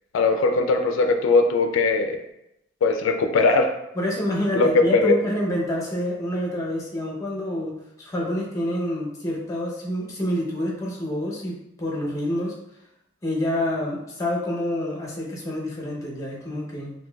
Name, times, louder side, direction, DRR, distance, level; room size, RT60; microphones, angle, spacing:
voice 1, 0.1-2.2 2.8-3.7 4.5-5.1, left 3 dB, 70° left, 5 dB, 0.3 m, -19 dB
voice 2, 3.9-12.6 13.2-16.9, left 1 dB, 15° left, -3 dB, 0.6 m, -27 dB
3.9 x 2.6 x 2.2 m, 0.85 s
head